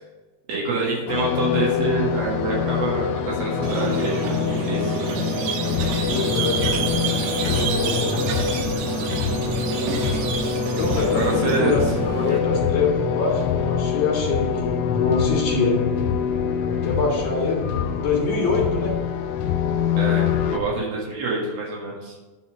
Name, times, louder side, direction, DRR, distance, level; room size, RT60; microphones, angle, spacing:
voice 1, 0.5-5.0 11.1-12.0 20.0-22.1, right 3 dB, 65° right, -3 dB, 3.3 m, -26 dB
sound 1, 1.1-20.6, left 8 dB, 90° left, 2.0 m, -25 dB
Squeak, 3.6-12.4, right 5 dB, 80° right, 2.9 m, -27 dB
voice 2, 6.0-6.7 7.3-8.3 10.7-11.8 12.1-15.8 16.6-17.7 17.9-19.0, left 4 dB, 60° left, -4 dB, 3.4 m, -24 dB
10.5 x 4.2 x 6.1 m, 1.2 s
omnidirectional pair, 4.8 m